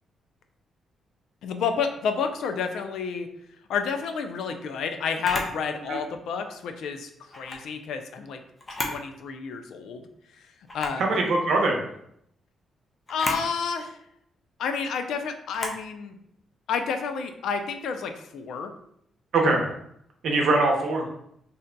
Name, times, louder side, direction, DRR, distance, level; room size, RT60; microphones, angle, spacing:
voice 1, 1.4-3.3 3.7-8.4 8.9-10.1 10.7-11.0 13.1-14.0 14.6-16.2 16.7-18.7, left 6 dB, 85° left, 7 dB, 0.3 m, -30 dB
Camera, 5.2-5.6 7.3-7.6 8.6-9.0 9.5-9.6 10.7-11.0 13.1-13.5 15.5-15.8, left 2 dB, 25° left, 0.5 m, -32 dB
voice 2, 11.0-11.8 19.3-19.7 20.2-21.1, right 2 dB, 65° right, 1 dB, 0.7 m, -22 dB
2.7 x 2.2 x 3.8 m, 0.73 s
cardioid pair, 150°, 0 cm